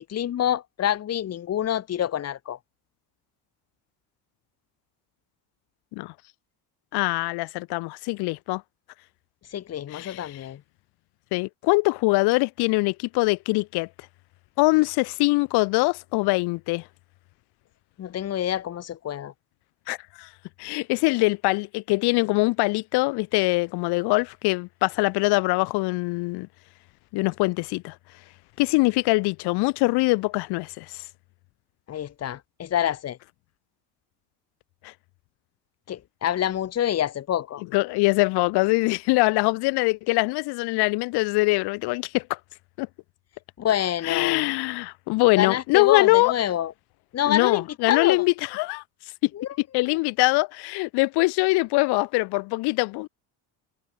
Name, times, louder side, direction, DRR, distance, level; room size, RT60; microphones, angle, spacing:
voice 1, 0.0-2.6 9.5-10.6 18.0-19.3 31.9-33.2 35.9-37.6 43.6-44.5 45.4-46.7 47.1-48.2 49.3-49.5 49.7-49.9, left 10 dB, 40° left, 4.9 m, -27 dB
voice 2, 6.9-8.6 9.9-10.5 11.3-13.9 14.6-16.8 19.9-20.3 20.6-26.5 27.1-27.9 28.6-31.0 34.8-34.9 37.7-42.4 42.8-42.9 44.0-46.3 47.3-48.8 49.2-49.3 49.7-53.1, left 24 dB, 80° left, 4.8 m, -23 dB
cardioid pair, 155°, 39 cm